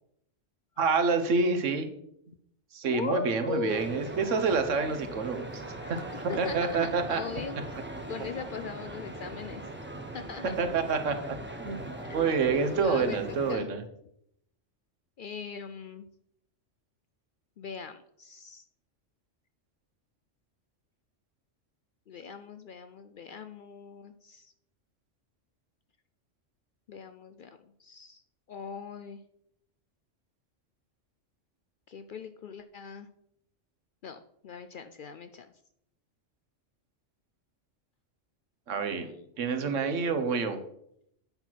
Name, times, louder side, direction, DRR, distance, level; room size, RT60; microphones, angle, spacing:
voice 1, 0.8-1.9 2.7-5.6 5.9-6.0 6.4-7.2 7.7-7.8 10.6-13.8 38.7-39.1 39.4-40.6, right 4 dB, 85° right, 8 dB, 1.3 m, -28 dB
voice 2, 2.9-3.9 5.8-6.0 6.3-7.6 8.1-9.7 10.1-10.5 12.0-12.4 12.7-13.2 13.5-13.7 15.2-16.1 17.6-18.6 22.1-24.5 26.9-28.2 28.5-29.2 31.9-33.1 34.0-35.5 38.7-39.8, left 6 dB, 60° left, 9 dB, 0.5 m, -40 dB
sound 1, 3.7-13.5, right 1 dB, 10° right, 0.9 m, -40 dB
8.7 x 5.9 x 4.5 m, 0.73 s
omnidirectional pair, 1.2 m